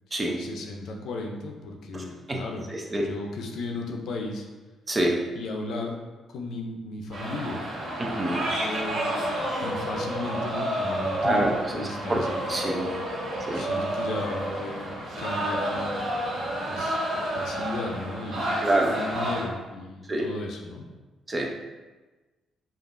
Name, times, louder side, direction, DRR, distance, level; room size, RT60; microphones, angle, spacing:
voice 1, 0.4-4.5 5.3-6.0 6.3-7.7 8.5-11.4 11.7-12.4 13.5-14.9 15.2-16.1 16.7-17.1 17.4-20.8, left 2 dB, 75° left, 1 dB, 0.6 m, -35 dB
voice 2, 2.7-3.0 4.9-5.2 8.0-8.4 11.2-11.6 12.1-12.2 12.5-12.9 13.5-13.6 18.6-18.9 20.1-20.2 21.3-21.5, right 1 dB, 25° right, 0 dB, 0.6 m, -25 dB
sound 1, 7.1-19.4, right 1 dB, 70° right, 1.4 m, -30 dB
5.1 x 2.5 x 2.6 m, 1.2 s
cardioid pair, 90°, 0 cm